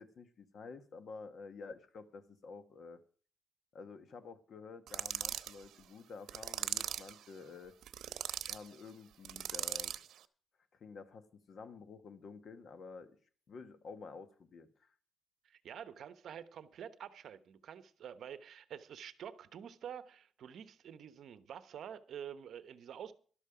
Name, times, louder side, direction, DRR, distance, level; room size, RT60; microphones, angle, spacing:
voice 1, 0.0-3.0 3.7-7.7 8.5-10.0 10.8-13.1 13.5-14.9, left 4 dB, 45° left, 1.4 m, -50 dB
sound 1, 4.9-5.5 6.3-7.1 7.8-8.6 9.2-10.1, right 11 dB, 90° right, 0.8 m, -39 dB
voice 2, 15.4-23.1, right 8 dB, 60° right, 1.0 m, -48 dB
12.5 x 12.0 x 5.0 m
cardioid pair, 170°, 0 cm